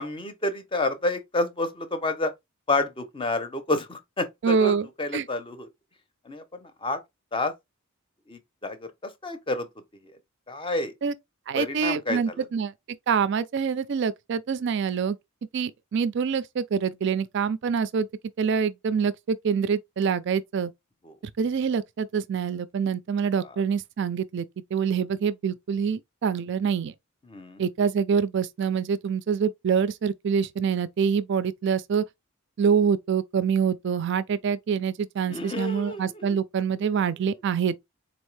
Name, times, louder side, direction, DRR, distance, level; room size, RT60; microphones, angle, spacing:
voice 1, 0.0-2.3 2.7-5.7 6.2-7.0 7.3-7.5 8.3-9.7 10.5-10.9 11.5-12.4 21.0-21.2 23.4-23.5 27.3-27.6 35.3-36.4 37.3-37.4, left 2 dB, 25° left, 0.5 m, -30 dB
voice 2, 4.4-4.9 5.1-5.3 11.0-11.1 11.5-12.7 13.1-15.2 15.5-18.1 18.4-20.7 21.4-24.5 24.7-26.9 27.6-32.0 32.6-37.8, right 6 dB, 55° right, 0.3 m, -25 dB
3.9 x 2.6 x 3.1 m
head